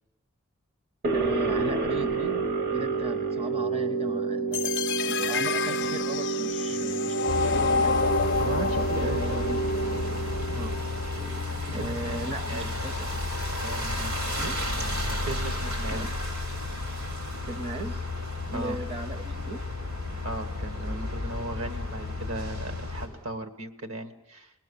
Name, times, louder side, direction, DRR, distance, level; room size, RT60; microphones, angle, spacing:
sound 1, 1.0-11.9, right 4 dB, 45° right, 1.0 m, -30 dB
voice 1, 1.1-4.7 5.1-8.4 8.8-9.6 10.5-10.8 11.7-13.1 14.4-14.6 15.9-16.1 17.5-18.0 18.5-19.6, right 1 dB, 25° right, 9 dB, 0.7 m, -37 dB
sound 2, 4.5-10.5, left 5 dB, 55° left, 0.7 m, -29 dB
sound 3, 7.3-23.1, left 2 dB, 85° right, 5.3 m, -32 dB
voice 2, 8.4-9.5 11.7-12.7 13.6-16.1 18.5-18.8 20.2-24.5, right 2 dB, 70° right, 7 dB, 1.4 m, -37 dB
28.0 x 20.0 x 6.9 m, 0.97 s
head